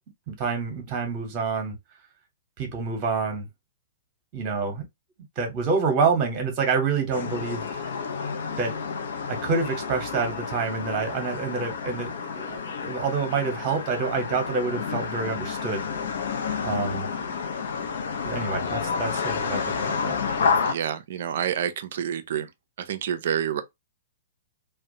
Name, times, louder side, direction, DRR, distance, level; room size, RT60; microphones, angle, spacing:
voice 1, 0.3-1.8 2.6-3.5 4.3-4.8 5.4-8.0 8.6-8.7 9.3-15.9 16.6-17.1 18.2-20.1, right 5 dB, 30° right, 0.8 m, -27 dB
sound 1, 7.1-20.7, left 5 dB, 60° left, 0.4 m, -30 dB
voice 2, 20.7-22.5 22.8-23.6, right 9 dB, 55° right, 0.4 m, -28 dB
2.4 x 2.1 x 2.6 m
figure-of-eight pair, 110°, 0 cm